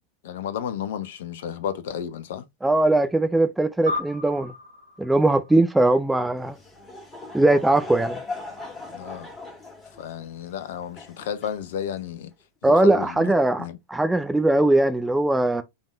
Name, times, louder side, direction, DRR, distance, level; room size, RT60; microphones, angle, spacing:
voice 1, 0.2-2.4 8.9-9.3 10.0-12.3 12.6-13.3 13.6-13.8, left 8 dB, 60° left, 0.6 m, -32 dB
voice 2, 2.6-4.5 5.0-6.5 7.3-8.2 12.6-15.6, right 2 dB, 5° right, 0.4 m, -20 dB
sound 1, 3.9-6.6, left 2 dB, 80° right, 1.3 m, -35 dB
Laughter / Crowd, 6.4-12.1, left 3 dB, 20° left, 2.1 m, -39 dB
5.4 x 3.4 x 2.4 m
figure-of-eight pair, 90°, 0 cm